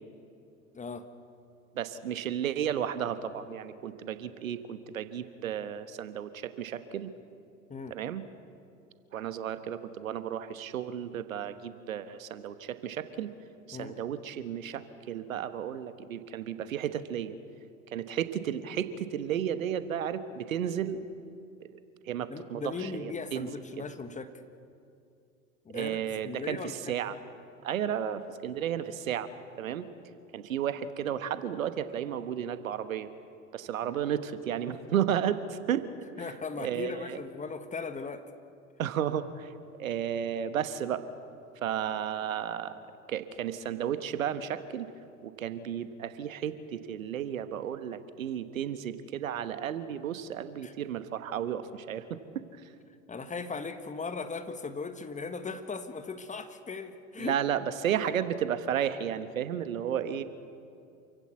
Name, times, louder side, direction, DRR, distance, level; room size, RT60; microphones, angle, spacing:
voice 1, 0.7-1.1 7.7-8.0 13.7-14.0 22.3-24.3 25.7-27.2 33.8-33.9 36.2-38.3 50.6-50.7 53.1-57.4, left 4 dB, 20° left, 9 dB, 1.6 m, -38 dB
voice 2, 1.7-7.1 7.9-8.2 9.1-13.3 13.7-17.3 17.9-21.0 21.7-21.8 22.1-23.5 25.7-27.1 27.6-29.3 29.6-29.9 30.3-33.1 33.5-35.9 36.6-37.2 38.8-39.5 39.8-41.0 41.6-42.8 43.1-44.9 45.2-52.4 57.2-60.2, right 9 dB, 75° right, 12 dB, 1.3 m, -33 dB
27.5 x 16.0 x 8.3 m, 2.5 s
hypercardioid pair, 85°, 41 cm